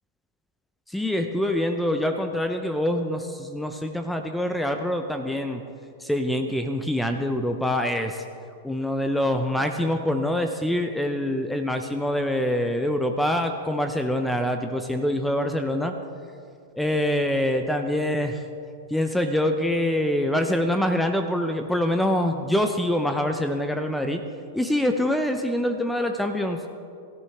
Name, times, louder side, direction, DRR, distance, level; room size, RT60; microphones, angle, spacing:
voice 1, 0.9-5.6 6.0-8.2 8.6-15.9 16.7-18.4 18.9-24.2 24.5-26.6, left 1 dB, 5° left, 6 dB, 0.8 m, -25 dB
17.5 x 14.0 x 3.5 m, 2.4 s
figure-of-eight pair, 95°, 0 cm